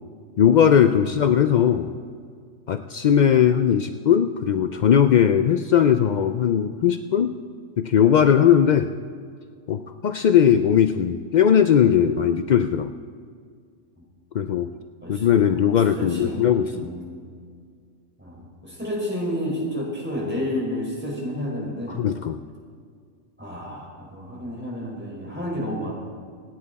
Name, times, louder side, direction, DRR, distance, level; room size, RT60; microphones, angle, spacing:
voice 1, 0.4-1.9 2.7-7.3 7.8-8.9 9.7-12.9 14.3-14.7 15.1-16.9 21.9-22.4, left 8 dB, 70° left, 8 dB, 0.4 m, -19 dB
voice 2, 15.9-17.2 18.2-22.0 23.4-25.9, equal, 10° right, -4 dB, 4.8 m, -30 dB
27.0 x 9.7 x 4.1 m, 2.1 s
omnidirectional pair, 1.3 m